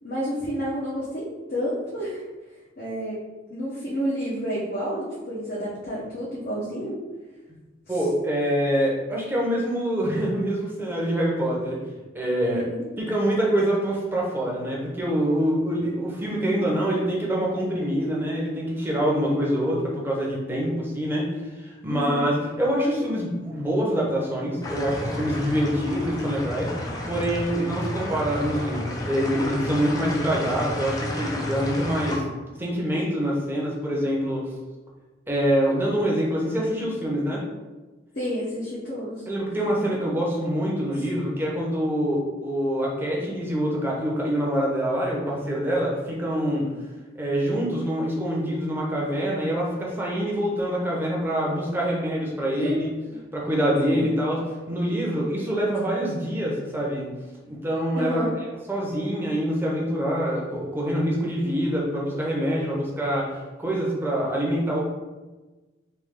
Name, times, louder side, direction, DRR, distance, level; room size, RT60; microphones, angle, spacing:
voice 1, 0.0-1.2 1.5-2.2 2.8-3.2 3.5-7.0 7.9-8.0 12.5-12.8 21.9-22.3 38.1-39.2 52.6-52.8 53.1-53.2 53.8-54.1 57.9-58.4, equal, 50° left, -7 dB, 0.8 m, -30 dB
voice 2, 7.9-11.8 12.1-12.6 13.0-32.2 32.6-34.4 35.3-37.4 39.3-46.7 47.2-52.9 53.3-54.4 54.7-57.0 57.5-58.3 58.7-64.8, equal, 10° right, -4 dB, 0.8 m, -25 dB
sound 1, 24.6-32.2, left 1 dB, 20° left, 0.5 m, -32 dB
3.2 x 3.0 x 3.6 m, 1.2 s
head